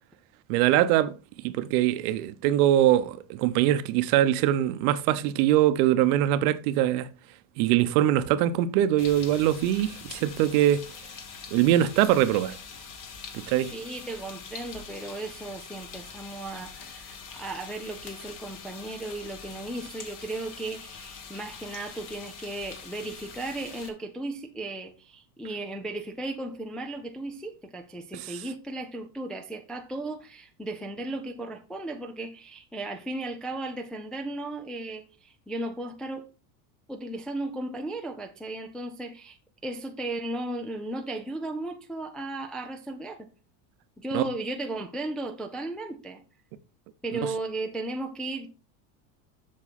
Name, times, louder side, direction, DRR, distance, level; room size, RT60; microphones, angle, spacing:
voice 1, 0.5-1.1 1.4-7.1 7.6-10.8 11.5-12.6 13.5-13.7 28.1-28.3 44.1-44.2, right 12 dB, 65° right, 0.9 m, -23 dB
sound 1, 9.0-23.9, left 6 dB, 40° left, 1.8 m, -44 dB
voice 2, 13.7-36.3 36.9-39.4 39.6-43.3 44.0-46.2 47.0-48.5, right 2 dB, ahead, 0.3 m, -35 dB
7.5 x 6.4 x 4.2 m
supercardioid pair, 140°, 46 cm